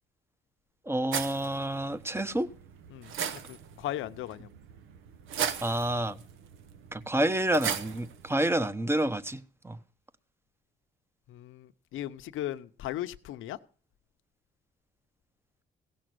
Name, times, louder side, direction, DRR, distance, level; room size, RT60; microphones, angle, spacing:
voice 1, 0.9-2.5 5.6-6.2 6.9-9.8, right 1 dB, 10° right, 1.0 m, -29 dB
sound 1, 1.1-8.7, right 8 dB, 85° right, 1.1 m, -38 dB
voice 2, 3.5-4.5 11.3-13.6, left 13 dB, 85° left, 0.8 m, -37 dB
17.0 x 6.2 x 7.8 m
cardioid pair, 90°, 20 cm